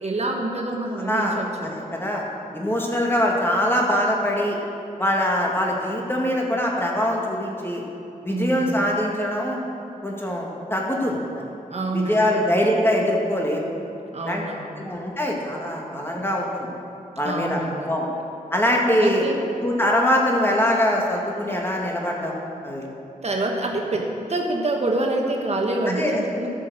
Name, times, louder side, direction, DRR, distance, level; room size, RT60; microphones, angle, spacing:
voice 1, 0.0-1.5 8.3-8.8 11.7-12.4 14.1-14.9 17.2-17.9 19.0-19.3 23.2-26.5, right 2 dB, 50° right, 1 dB, 1.2 m, -26 dB
voice 2, 1.0-2.2 2.5-4.6 5.0-7.8 8.2-9.6 10.0-11.2 11.9-13.7 14.2-14.4 14.8-16.7 17.2-17.6 17.9-18.1 18.5-19.3 19.6-22.3 22.6-22.9 25.9-26.1, left 1 dB, 15° left, -2 dB, 2.1 m, -23 dB
13.0 x 6.2 x 6.4 m, 2.8 s
cardioid pair, 70°, 14 cm